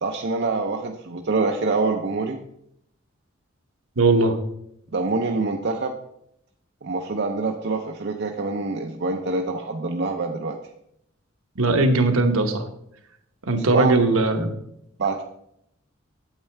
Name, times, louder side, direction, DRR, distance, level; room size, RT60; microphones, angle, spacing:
voice 1, 0.0-2.4 4.9-6.0 6.8-10.6 13.6-13.9 15.0-15.2, right 3 dB, 50° right, 3 dB, 0.6 m, -25 dB
voice 2, 4.0-4.4 11.6-12.6 13.5-14.5, right 2 dB, 75° right, 5 dB, 1.0 m, -19 dB
8.8 x 8.2 x 3.3 m, 0.75 s
head